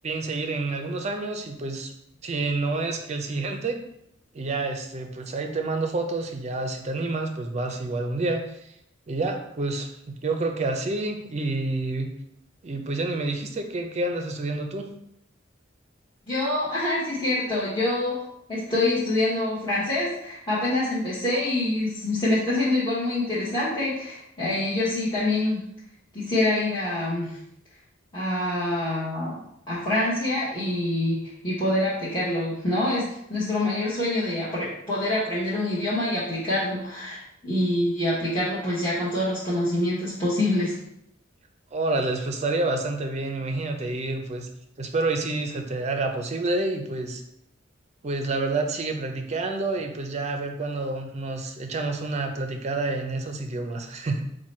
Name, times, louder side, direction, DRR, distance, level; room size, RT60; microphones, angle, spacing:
voice 1, 0.0-1.9 2.2-3.8 4.3-8.6 9.1-12.1 12.6-14.9 41.7-44.5 44.8-47.2 48.0-54.2, right 2 dB, 35° right, 5 dB, 0.4 m, -28 dB
voice 2, 16.3-18.1 18.5-25.6 26.1-27.4 28.1-40.7, left 1 dB, 25° left, -10 dB, 1.0 m, -26 dB
4.6 x 2.2 x 4.2 m, 0.75 s
head